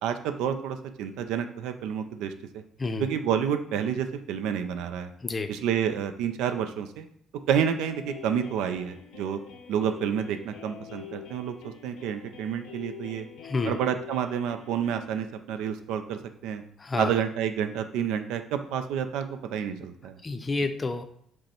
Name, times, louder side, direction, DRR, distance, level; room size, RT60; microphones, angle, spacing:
voice 1, 0.0-2.6 3.0-5.1 5.5-7.1 7.5-9.4 9.7-13.3 13.6-16.6 17.0-20.2, right 8 dB, 90° right, 8 dB, 0.4 m, -29 dB
sound 1, 7.8-15.1, left 9 dB, 90° left, 0.6 m, -45 dB
voice 2, 13.4-13.8 16.8-17.1 20.2-21.0, left 3 dB, 25° left, 8 dB, 0.4 m, -29 dB
5.2 x 2.1 x 4.3 m, 0.68 s
cardioid pair, 105°, 0 cm